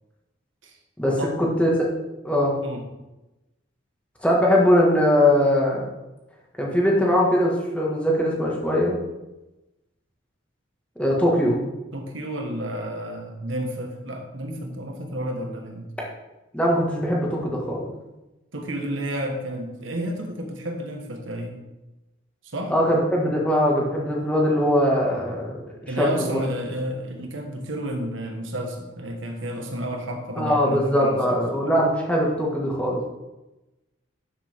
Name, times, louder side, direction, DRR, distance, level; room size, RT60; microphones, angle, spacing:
voice 1, 1.0-1.7 2.2-2.5 4.2-5.9 6.6-9.0 11.0-11.6 16.5-17.9 22.7-25.6 26.0-26.4 30.4-33.1, equal, 5° left, -3 dB, 2.0 m, -21 dB
voice 2, 11.9-15.9 18.5-21.6 22.4-22.7 25.9-31.7, right 1 dB, 90° right, 2 dB, 1.7 m, -31 dB
13.0 x 6.9 x 3.7 m, 1.0 s
head